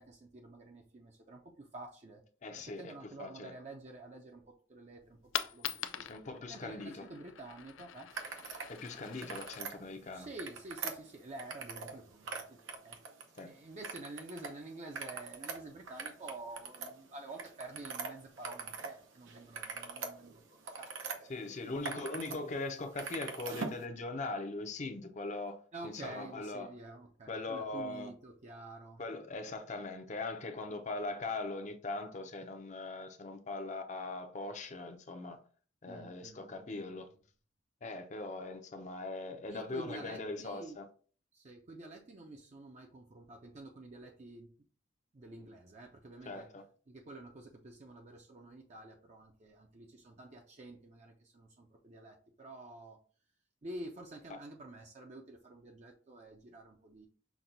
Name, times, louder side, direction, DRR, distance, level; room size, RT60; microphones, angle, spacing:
voice 1, 0.0-2.2 2.6-4.4 4.7-6.0 6.5-8.1 10.1-12.6 12.8-13.0 13.4-21.3 21.6-22.2 25.7-29.0 35.9-36.9 39.5-40.8 41.3-44.5 45.1-46.5 46.9-53.0 53.6-57.1, right 2 dB, 35° right, 0.5 m, -49 dB
voice 2, 2.4-3.5 6.1-7.1 8.7-10.3 13.4-13.5 21.3-26.7 27.3-28.1 29.0-35.4 35.8-37.1 37.8-40.8 46.3-46.6 54.3-54.4, left 3 dB, 40° left, 0.6 m, -41 dB
Coin (dropping), 5.0-11.0, left 10 dB, 90° left, 0.4 m, -44 dB
sound 1, 8.1-8.7 9.1-9.7 10.2-12.0 12.2-13.4 13.8-14.5 14.8-18.9 19.3-21.2 21.6-22.4 22.6-23.8, right 4 dB, 85° right, 0.8 m, -42 dB
5.9 x 2.2 x 3.9 m
head